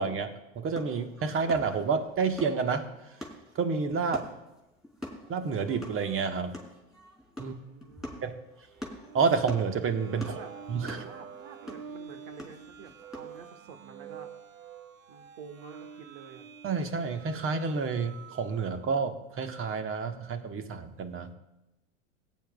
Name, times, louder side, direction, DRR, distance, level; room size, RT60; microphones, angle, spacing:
voice 1, 0.0-2.9 3.5-4.3 5.3-6.5 7.4-7.5 8.2-8.3 9.1-10.3 10.7-11.0 16.6-21.3, right 5 dB, 35° right, 7 dB, 1.4 m, -29 dB
sound 1, 0.7-13.4, left 1 dB, ahead, 3.8 m, -45 dB
voice 2, 7.4-8.3 10.2-10.5 10.9-14.3 15.1-16.5 21.2-21.3, right 5 dB, 65° right, 6 dB, 1.7 m, -48 dB
sound 2, 8.6-18.9, right 7 dB, 90° right, 0.8 m, -48 dB
20.0 x 9.4 x 2.4 m, 0.96 s
hypercardioid pair, 85°, 39 cm